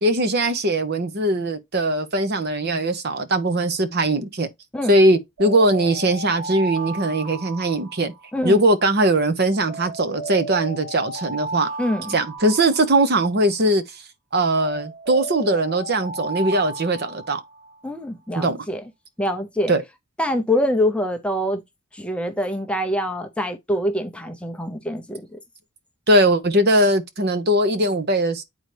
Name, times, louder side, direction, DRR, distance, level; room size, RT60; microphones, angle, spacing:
voice 1, 0.0-4.5 4.9-8.1 8.4-11.7 12.1-13.8 14.3-17.4 18.4-18.7 19.7-19.8 26.1-28.4, right 1 dB, 50° right, 0.9 m, -20 dB
sound 1, 5.4-8.6 9.7-13.4 14.6-17.8, right 2 dB, 80° right, 3.5 m, -34 dB
voice 2, 11.8-12.2 17.8-18.8 19.2-19.7 20.2-21.6 21.9-25.2, left 1 dB, 5° left, 0.6 m, -24 dB
8.9 x 4.0 x 3.3 m
head